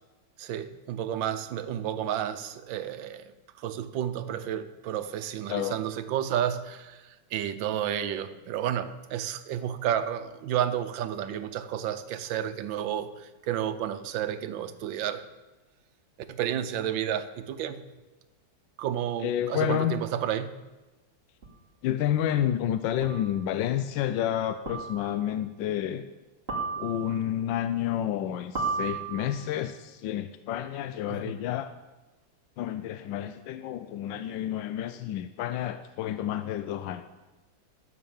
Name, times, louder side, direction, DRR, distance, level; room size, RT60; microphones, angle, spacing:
voice 1, 0.4-3.3 3.6-15.2 16.3-17.8 18.8-20.5 31.1-31.2, right 10 dB, 90° right, 1.5 m, -31 dB
voice 2, 19.2-19.9 21.8-26.1 26.8-31.7 32.6-37.0, left 11 dB, 80° left, 1.3 m, -30 dB
sound 1, 21.4-21.5 23.0-23.4 24.7-25.2 26.5-27.3 28.6-29.5, right 4 dB, 30° right, 2.7 m, -34 dB
12.5 x 6.7 x 7.1 m
omnidirectional pair, 2.0 m